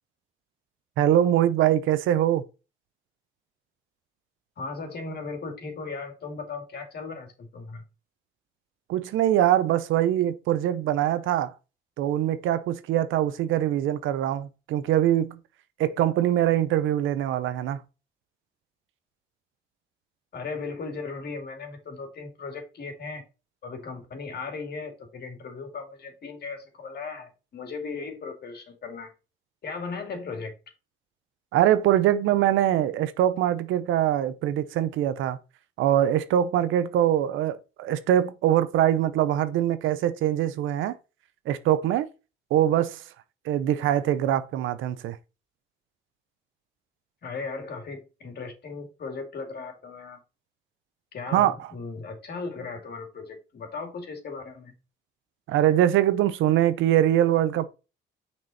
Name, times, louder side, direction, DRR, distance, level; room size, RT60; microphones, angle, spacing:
voice 1, 1.0-2.4 8.9-11.5 12.0-15.4 15.8-17.8 31.5-35.4 35.8-41.0 41.5-42.1 42.5-43.0 43.5-45.2 51.3-51.5 55.5-57.7, right 11 dB, 90° right, 0.7 m, -23 dB
voice 2, 4.6-7.8 20.3-23.2 23.6-29.1 29.6-30.5 47.2-50.2 51.1-54.7, left 4 dB, 55° left, 2.4 m, -37 dB
6.2 x 4.5 x 4.1 m
cardioid pair, 90°, 20 cm